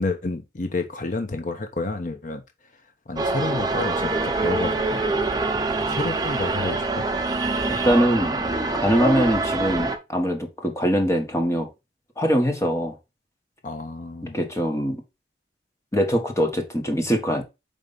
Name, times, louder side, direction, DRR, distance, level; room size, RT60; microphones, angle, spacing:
voice 1, 0.0-2.4 3.1-5.1 5.9-7.0 13.6-14.4, left 2 dB, 45° left, 0.9 m, -30 dB
sound 1, 3.2-10.0, right 3 dB, 25° right, 0.9 m, -25 dB
voice 2, 7.6-11.7 12.2-12.9 14.2-15.0 15.9-17.4, equal, 15° left, 1.5 m, -23 dB
5.4 x 3.6 x 5.2 m
head